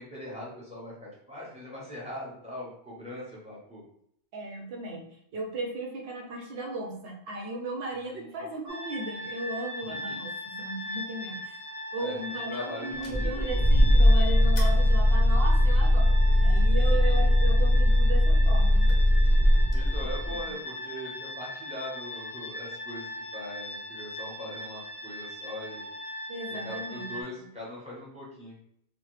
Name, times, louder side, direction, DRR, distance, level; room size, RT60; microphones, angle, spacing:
voice 1, 0.0-3.8 8.1-8.4 9.9-10.2 11.2-11.4 12.0-13.4 17.0-17.1 19.7-25.8 26.5-28.6, left 1 dB, 5° right, -6 dB, 1.0 m, -41 dB
voice 2, 4.3-11.6 11.9-18.9 20.3-20.5 26.3-27.5, right 2 dB, 70° right, 1 dB, 0.8 m, -36 dB
sound 1, 8.7-27.2, left 1 dB, 40° right, 1.1 m, -39 dB
sound 2, 13.0-20.4, left 1 dB, 45° left, 0.8 m, -20 dB
3.2 x 2.2 x 3.1 m, 0.70 s
omnidirectional pair, 1.1 m